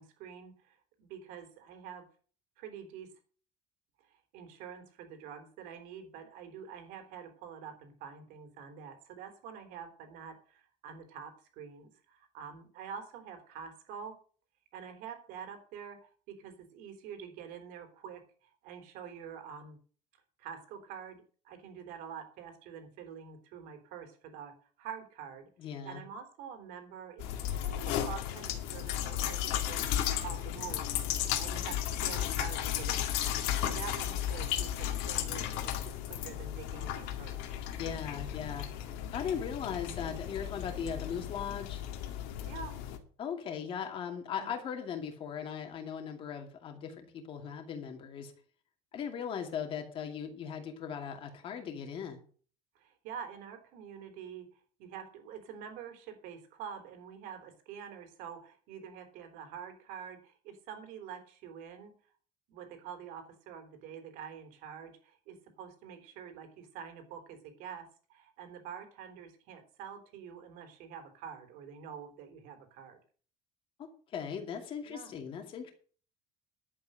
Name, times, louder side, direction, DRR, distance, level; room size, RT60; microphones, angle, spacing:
voice 1, 0.0-2.1 2.6-3.1 4.0-14.2 14.7-19.8 20.4-25.5 25.8-27.3 27.5-33.1 33.6-37.4 42.4-42.8 44.4-44.5 52.8-61.9 62.5-73.0 74.9-75.1, right 7 dB, 65° right, 7 dB, 3.6 m, -47 dB
voice 2, 25.6-26.0 37.7-38.7 39.1-41.8 43.2-48.3 48.9-52.2 74.1-75.7, left 7 dB, 35° left, 4 dB, 2.5 m, -38 dB
sound 1, 27.2-43.0, left 11 dB, 85° left, 2.3 m, -34 dB
11.0 x 8.6 x 6.4 m, 0.43 s
cardioid pair, 170°, 15 cm